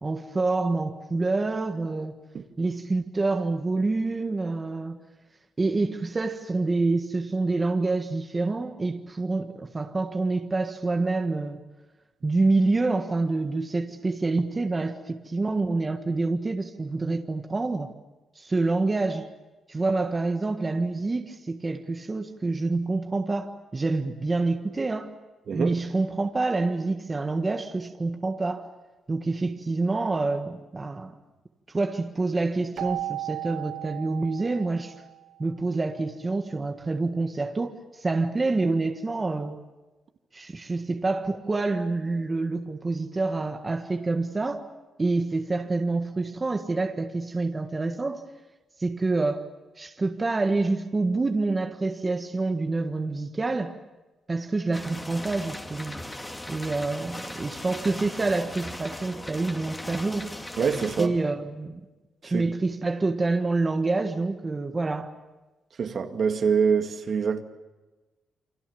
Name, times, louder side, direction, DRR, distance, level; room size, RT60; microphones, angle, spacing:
voice 1, 0.0-2.2 2.6-5.0 5.6-11.6 12.2-17.9 18.3-19.3 19.7-25.1 25.5-28.7 29.1-31.1 31.7-34.9 35.4-39.6 40.3-44.6 45.0-48.2 48.8-49.4 49.8-53.8 54.3-55.9 56.5-60.3 61.0-61.8 62.2-65.1, right 3 dB, 25° right, 1.6 m, -27 dB
Keyboard (musical), 32.8-35.4, right 13 dB, 75° right, 0.8 m, -35 dB
sound 1, 54.7-61.1, left 1 dB, 15° left, 2.4 m, -38 dB
voice 2, 60.6-61.2 62.2-62.5 65.8-67.4, right 6 dB, 55° right, 2.1 m, -25 dB
29.0 x 25.0 x 7.1 m
cardioid pair, 100°, 0 cm